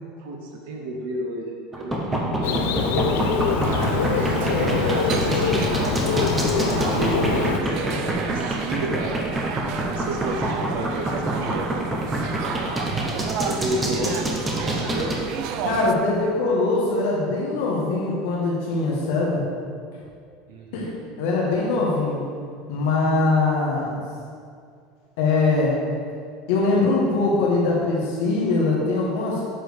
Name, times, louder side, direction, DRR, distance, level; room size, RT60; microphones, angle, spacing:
voice 1, 0.0-2.8 3.5-6.0 6.5-11.8 12.4-12.9 13.4-14.3 14.6-15.2 20.5-20.9, right 2 dB, 90° right, 0 dB, 0.9 m, -32 dB
sound 1, 1.7-15.2, right 1 dB, 10° right, 0.7 m, -26 dB
Bird, 2.4-7.6, left 6 dB, 90° left, 0.6 m, -24 dB
sound 2, 3.6-15.9, right 7 dB, 45° right, 0.4 m, -32 dB
voice 2, 15.6-19.4 20.7-22.2 22.7-24.0 25.2-25.7 26.5-29.5, left 3 dB, 65° left, -4 dB, 1.4 m, -22 dB
7.5 x 6.6 x 3.5 m, 2.2 s
cardioid pair, 180°, 0 cm